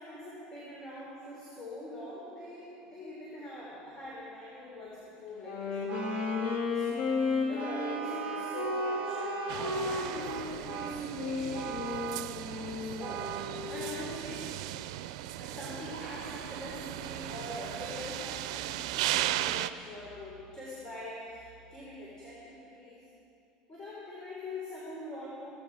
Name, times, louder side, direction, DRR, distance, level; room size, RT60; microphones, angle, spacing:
voice 1, 0.0-14.5 15.4-23.1 23.7-25.5, left 1 dB, 20° left, -6 dB, 3.8 m, -44 dB
Wind instrument woodwind instrument, 5.3-14.0, left 3 dB, 65° left, 3.4 m, -34 dB
Vehicle horn car horn honking, 5.9-6.8 7.6-9.7 10.3-11.1 11.5-12.4 13.0-13.6, right 11 dB, 45° right, 0.7 m, -40 dB
sound 1, 9.5-19.7, right 14 dB, 85° right, 0.4 m, -37 dB
17.0 x 14.0 x 4.9 m, 2.6 s
supercardioid pair, 120°, 3 cm